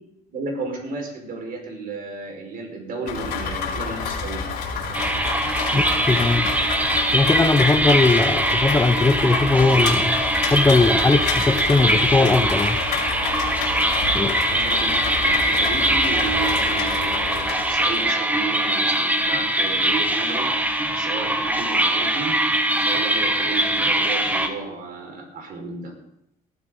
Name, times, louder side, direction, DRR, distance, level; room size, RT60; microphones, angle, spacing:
voice 1, 0.3-4.5 14.4-22.4 22.8-25.9, right 4 dB, 60° right, 2 dB, 5.1 m, -33 dB
Rain, 3.1-18.0, left 5 dB, 85° left, 4.1 m, -29 dB
sound 1, 4.9-24.5, right 1 dB, 10° right, 1.7 m, -22 dB
voice 2, 5.7-6.5 7.1-10.2 10.5-12.8 14.1-14.4, left 3 dB, 15° left, 9 dB, 0.8 m, -19 dB
19.0 x 12.5 x 4.0 m, 0.79 s
cardioid pair, 110°, 17 cm